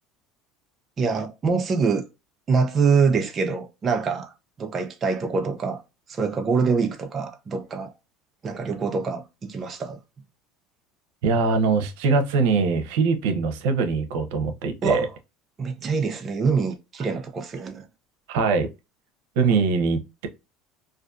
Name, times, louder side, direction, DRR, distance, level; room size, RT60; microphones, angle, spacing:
voice 1, 1.0-2.1 2.5-4.3 4.6-5.8 6.1-7.9 8.4-10.0 14.8-15.1 15.6-17.8, right 5 dB, 25° right, 0.4 m, -24 dB
voice 2, 11.2-15.1 18.3-18.7 19.4-20.3, right 4 dB, 80° right, 0.6 m, -22 dB
2.4 x 2.4 x 2.2 m
cardioid pair, 140°, 0 cm